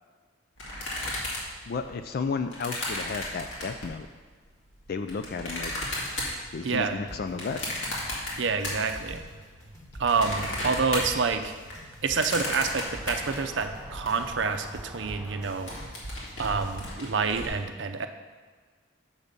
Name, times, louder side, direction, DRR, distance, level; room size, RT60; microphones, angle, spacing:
sound 1, 0.6-4.0 4.7-9.2 9.5-14.1 14.5-14.6 14.8-15.1 15.4-17.5, left 1 dB, 75° left, 2.3 m, -35 dB
voice 1, 1.7-4.1 4.9-5.7 6.5-7.7, left 4 dB, 50° left, 8 dB, 0.4 m, -33 dB
voice 2, 6.6-7.0 8.3-9.2 10.0-11.5 12.0-15.7 16.4-18.1, right 5 dB, 65° right, 7 dB, 0.6 m, -28 dB
sound 2, 7.0-16.9, equal, 15° left, 1.3 m, -46 dB
sound 3, 11.6-15.8, right 1 dB, 10° right, 0.7 m, -46 dB
7.2 x 5.3 x 6.6 m, 1.5 s
head